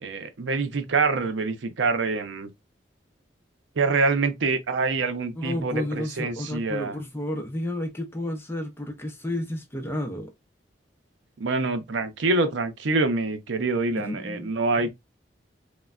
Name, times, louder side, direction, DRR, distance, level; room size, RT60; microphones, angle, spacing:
voice 1, 0.0-2.5 3.8-6.9 11.4-14.9, right 3 dB, 75° right, 0.5 m, -25 dB
voice 2, 5.4-10.3 14.0-14.5, left 1 dB, 10° left, 0.5 m, -31 dB
3.2 x 2.1 x 2.3 m
head